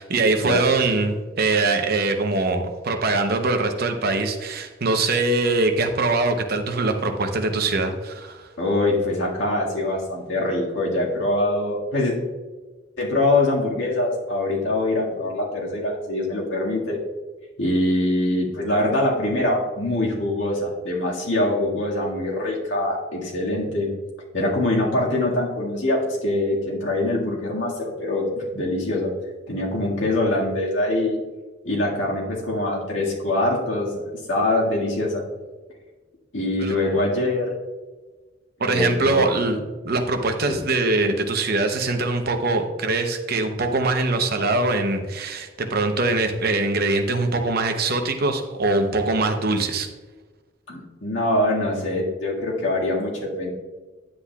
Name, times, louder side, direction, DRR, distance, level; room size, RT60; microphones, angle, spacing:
voice 1, 0.0-8.5 36.6-37.0 38.6-49.9, right 3 dB, 50° right, 5 dB, 0.8 m, -23 dB
voice 2, 8.6-12.2 13.0-17.0 17.6-23.9 24.3-29.1 29.5-31.2 31.6-35.2 36.3-37.5 38.6-39.3 40.4-40.6 50.7-53.5, left 1 dB, 70° left, -3 dB, 1.8 m, -23 dB
9.9 x 7.8 x 2.3 m, 1.3 s
head